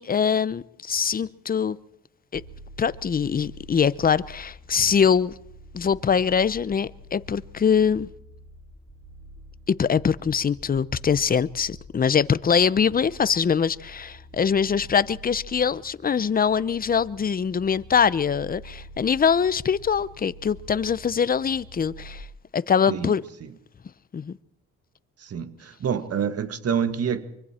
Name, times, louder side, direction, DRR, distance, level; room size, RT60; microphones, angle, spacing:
voice 1, 0.0-1.8 2.3-2.4 2.8-5.3 5.7-8.1 9.7-22.3 22.5-23.2 24.1-24.4, left 7 dB, 30° left, 0.7 m, -23 dB
sound 1, 2.3-22.2, right 1 dB, 5° right, 2.5 m, -46 dB
voice 2, 25.2-27.3, right 7 dB, 55° right, 1.6 m, -27 dB
24.5 x 24.5 x 4.4 m
cardioid pair, 90°, 30 cm